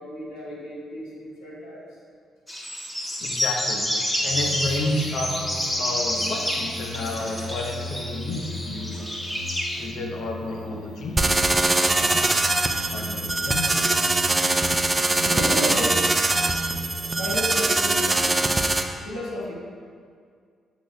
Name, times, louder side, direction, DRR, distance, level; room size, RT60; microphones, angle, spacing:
voice 1, 0.0-1.8 15.2-16.0 16.2-16.3 17.2-18.5 19.0-19.5, equal, 85° left, -7 dB, 1.6 m, -32 dB
sound 1, 2.5-9.9, left 1 dB, 15° left, 1.4 m, -29 dB
voice 2, 3.2-5.3 5.8-9.1 9.8-11.2 11.8-12.5 12.9-13.8, left 2 dB, 65° left, 1 dB, 0.8 m, -31 dB
sound 2, 4.3-17.5, equal, 85° right, 0.8 m, -38 dB
sound 3, 11.2-18.8, right 2 dB, 25° right, 0.6 m, -22 dB
8.0 x 6.2 x 2.2 m, 2.1 s
hypercardioid pair, 45°, 0 cm